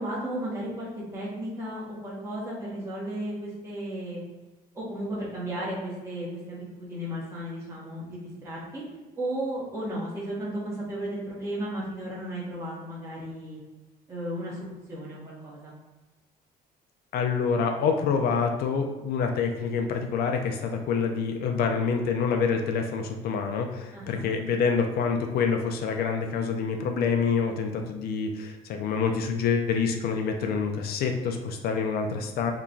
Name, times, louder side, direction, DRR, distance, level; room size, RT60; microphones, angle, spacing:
voice 1, 0.0-4.2 4.7-8.8 9.2-13.6 14.1-15.7 23.9-24.3, right 1 dB, 15° right, -7 dB, 1.0 m, -34 dB
voice 2, 17.1-32.5, left 5 dB, 65° left, 4 dB, 0.5 m, -27 dB
2.9 x 2.2 x 3.8 m, 1.2 s
cardioid pair, 110°, 17 cm